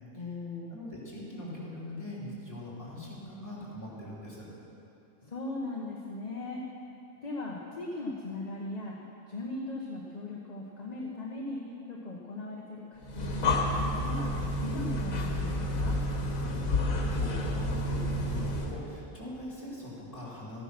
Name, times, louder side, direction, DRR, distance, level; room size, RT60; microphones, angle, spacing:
voice 1, 0.1-0.8 5.2-6.6 7.2-9.0 9.3-16.0, left 2 dB, 35° left, -2 dB, 1.1 m, -38 dB
voice 2, 0.7-4.5 16.2-20.6, left 1 dB, 15° left, -7 dB, 3.2 m, -42 dB
Breathing, 13.0-18.8, left 1 dB, 85° left, 1.6 m, -30 dB
13.5 x 9.9 x 6.1 m, 3.0 s
omnidirectional pair, 1.4 m